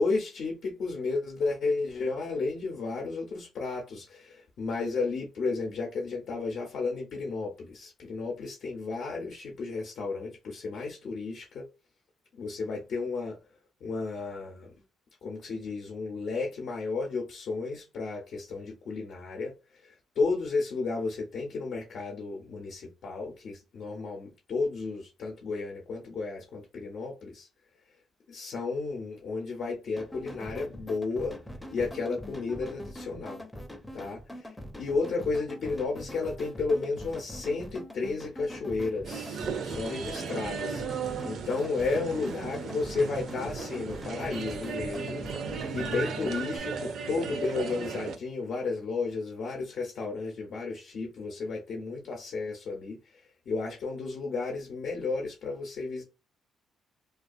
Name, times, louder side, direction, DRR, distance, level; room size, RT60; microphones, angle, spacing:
voice 1, 0.0-11.6 12.3-13.4 13.8-14.7 15.2-27.5 28.3-31.4 31.7-33.4 33.9-45.3 45.5-56.0, left 4 dB, 65° left, 0.6 m, -33 dB
sound 1, 30.0-46.6, equal, 10° left, 0.5 m, -43 dB
sound 2, 39.0-48.2, right 6 dB, 65° right, 0.4 m, -36 dB
2.3 x 2.2 x 2.5 m
cardioid pair, 90°, 0 cm